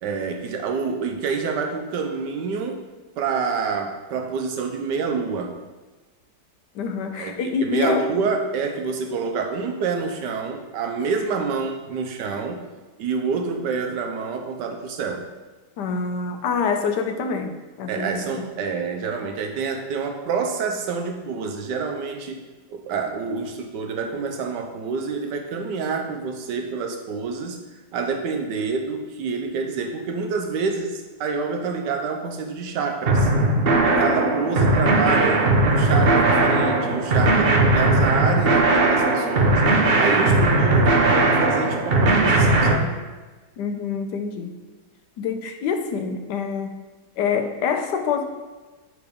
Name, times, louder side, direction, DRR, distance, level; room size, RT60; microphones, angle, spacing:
voice 1, 0.0-2.8 3.2-5.6 7.1-7.3 7.6-12.6 13.0-15.3 17.9-22.4 22.7-27.6 27.9-33.3 33.8-39.6 40.0-43.0, right 5 dB, 85° right, 4 dB, 1.4 m, -27 dB
voice 2, 6.7-8.0 15.8-18.5 43.6-44.6 45.2-46.8 47.2-48.3, left 5 dB, 80° left, 6 dB, 1.3 m, -26 dB
sound 1, 33.1-42.7, right 2 dB, 45° right, 0.8 m, -18 dB
5.1 x 4.7 x 5.1 m, 1.2 s
omnidirectional pair, 1.8 m